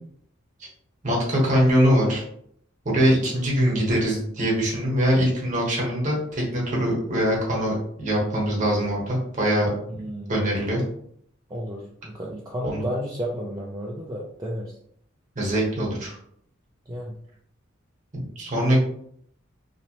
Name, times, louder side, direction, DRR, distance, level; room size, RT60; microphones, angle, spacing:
voice 1, 1.0-2.2 2.8-9.7 10.3-10.8 12.6-12.8 15.3-16.2 18.1-18.8, equal, 40° right, -3 dB, 1.0 m, -22 dB
voice 2, 10.0-10.3 11.5-14.7 16.9-17.2, equal, 20° right, -4 dB, 0.3 m, -32 dB
2.8 x 2.0 x 2.8 m, 0.67 s
head